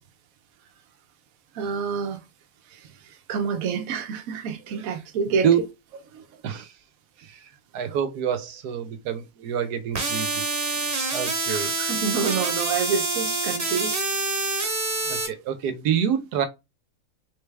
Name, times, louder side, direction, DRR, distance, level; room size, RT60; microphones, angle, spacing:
voice 1, 1.5-2.2 2.7-2.9 3.3-5.5 6.1-6.2 11.5-14.0 14.6-14.7, right 6 dB, 65° right, 1.1 m, -28 dB
voice 2, 7.2-10.8 11.1-11.7 15.1-16.5, right 8 dB, 80° right, 1.3 m, -27 dB
sound 1, 9.9-15.3, right 3 dB, 35° right, 1.4 m, -26 dB
3.9 x 3.3 x 3.3 m
omnidirectional pair, 1.7 m